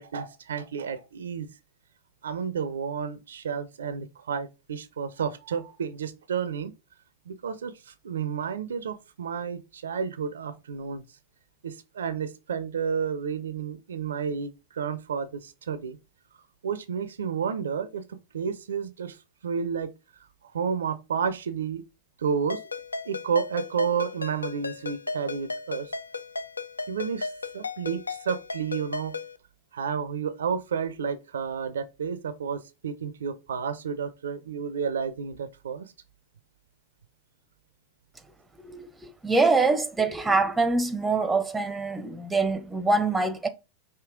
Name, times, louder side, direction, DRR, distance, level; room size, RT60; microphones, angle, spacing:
voice 1, 0.0-1.5 2.2-6.7 7.3-11.0 11.6-16.0 16.6-19.2 19.4-19.9 20.4-21.8 22.2-22.6 23.1-25.9 26.9-29.2 29.7-35.9, right 6 dB, 65° right, 0.4 m, -31 dB
Ringtone, 22.5-29.4, left 4 dB, 80° left, 0.4 m, -35 dB
voice 2, 38.6-43.5, right 3 dB, 10° right, 0.6 m, -24 dB
5.1 x 2.7 x 3.6 m
figure-of-eight pair, 90°, 0 cm